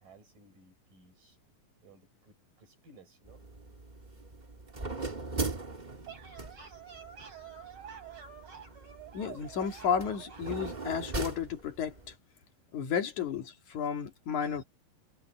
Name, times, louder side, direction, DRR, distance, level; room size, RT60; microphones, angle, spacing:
voice 1, 0.0-1.4 1.8-3.4, right 3 dB, 70° right, 7.3 m, -59 dB
sound 1, 3.2-12.1, right 3 dB, 20° right, 1.2 m, -40 dB
sound 2, 5.8-10.8, right 8 dB, 35° right, 5.5 m, -48 dB
voice 2, 9.1-12.1 12.7-14.6, left 7 dB, 60° left, 3.3 m, -33 dB
omnidirectional pair, 4.0 m